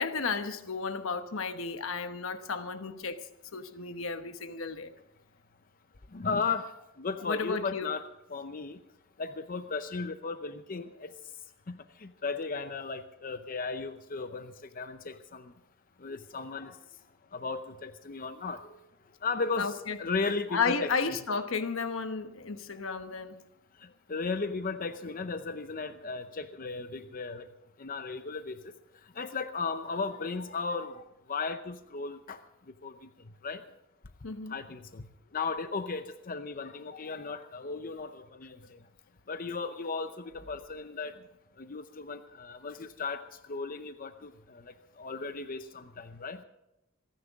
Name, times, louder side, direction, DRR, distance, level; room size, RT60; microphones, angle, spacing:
voice 1, 0.0-3.2 3.5-4.9 7.2-7.9 19.6-20.0 20.5-23.4 34.2-34.5, left 5 dB, 75° left, 1.1 m, -33 dB
voice 2, 6.1-6.7 7.0-8.0 8.3-8.8 9.2-11.1 11.7-15.5 16.0-16.8 17.3-18.6 19.2-21.2 24.1-27.4 27.8-28.6 29.2-31.0 31.3-32.4 32.8-32.9 33.4-33.6 34.5-35.0 35.3-38.8 39.3-41.1 41.6-43.2 43.5-44.6 45.0-46.4, left 4 dB, 45° left, 0.7 m, -35 dB
27.5 x 10.5 x 3.6 m
head